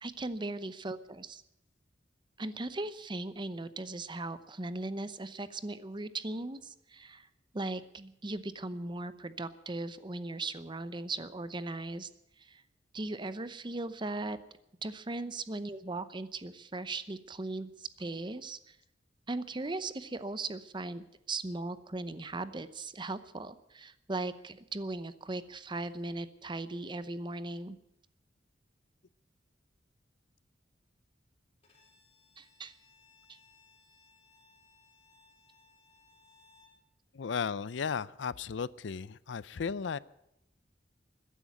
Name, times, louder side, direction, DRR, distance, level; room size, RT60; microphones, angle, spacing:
voice 1, 0.0-1.4 2.4-7.3 7.5-12.1 12.4-12.6 12.9-14.4 14.8-18.8 19.3-27.8 32.4-32.7 33.3-33.4, right 2 dB, 25° right, 13 dB, 0.8 m, -38 dB
Bowed string instrument, 31.6-36.8, left 4 dB, 35° left, 4.2 m, -64 dB
voice 2, 37.1-40.0, left 6 dB, 85° left, 20 dB, 0.5 m, -35 dB
15.0 x 10.5 x 9.2 m, 0.82 s
head